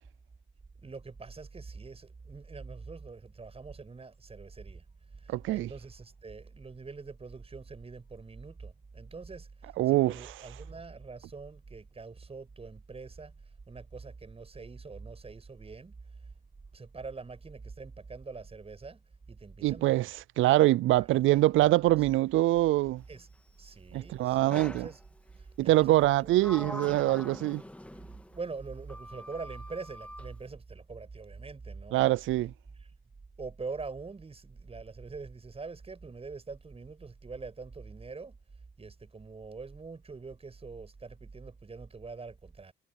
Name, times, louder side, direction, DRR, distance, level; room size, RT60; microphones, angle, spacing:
voice 1, 0.8-4.8 5.1-13.3 13.7-16.0 16.7-20.1 21.0-21.1 21.3-21.4 23.1-23.3 23.6-25.0 25.3-26.4 28.3-32.5 33.4-38.4 38.8-42.7, right 4 dB, 30° right, 7.5 m, -44 dB
voice 2, 5.3-5.7 9.8-10.2 19.6-23.0 23.9-24.9 25.6-27.6 31.9-32.5, right 16 dB, 80° right, 0.5 m, -24 dB
Sliding door, 24.5-25.0 26.0-28.4 28.9-30.3, left 1 dB, 5° left, 1.7 m, -43 dB
cardioid pair, 90°, 20 cm